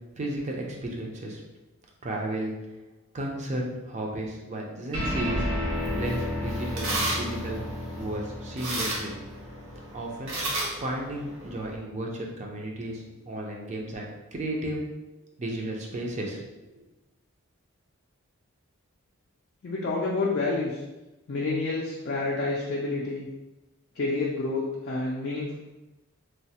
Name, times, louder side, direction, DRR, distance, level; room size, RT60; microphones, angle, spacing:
voice 1, 0.2-1.4 2.0-2.5 3.1-5.5 5.9-7.6 8.0-9.1 9.9-10.3 10.8-14.8 15.4-16.4, right 1 dB, 35° right, -1 dB, 0.4 m, -33 dB
sound 1, 4.9-11.7, left 1 dB, 85° right, 1.4 m, -33 dB
sound 2, 5.7-11.8, right 1 dB, 65° right, 0.7 m, -34 dB
voice 2, 19.6-20.8 21.3-23.3 23.9-25.5, left 3 dB, 50° left, -4 dB, 0.4 m, -28 dB
3.1 x 2.0 x 2.7 m, 1.1 s
head